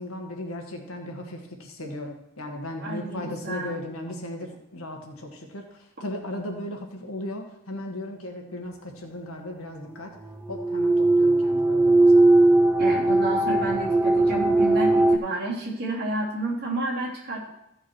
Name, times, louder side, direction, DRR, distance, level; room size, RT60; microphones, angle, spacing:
voice 1, 0.0-10.2 10.5-12.3, left 1 dB, 85° left, 3 dB, 1.8 m, -36 dB
voice 2, 2.8-3.8 12.8-17.5, right 2 dB, 50° right, -4 dB, 3.1 m, -30 dB
sound 1, 10.4-15.2, right 2 dB, 10° right, 0.5 m, -19 dB
14.5 x 6.0 x 4.7 m, 0.83 s
head